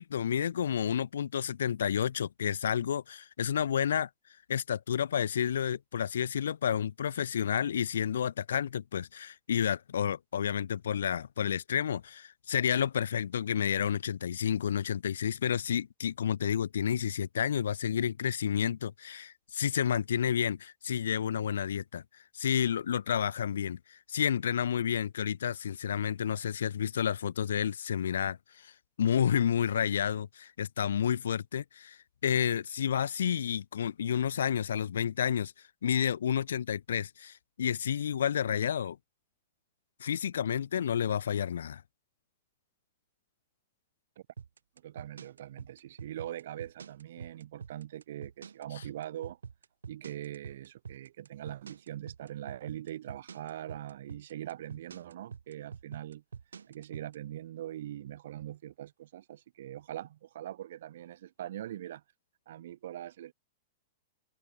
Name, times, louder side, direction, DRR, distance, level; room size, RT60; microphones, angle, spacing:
voice 1, 0.0-4.1 4.5-22.0 22.3-28.4 28.6-28.7 29.0-35.5 35.8-39.0 40.0-41.8, left 8 dB, 80° left, 0.8 m, -30 dB
sound 1, 44.4-57.2, right 6 dB, 90° right, 5.8 m, -45 dB
voice 2, 44.8-49.4 49.9-56.2 56.7-62.0 62.5-63.3, right 12 dB, 70° right, 0.9 m, -42 dB
hypercardioid pair, 115°, 0 cm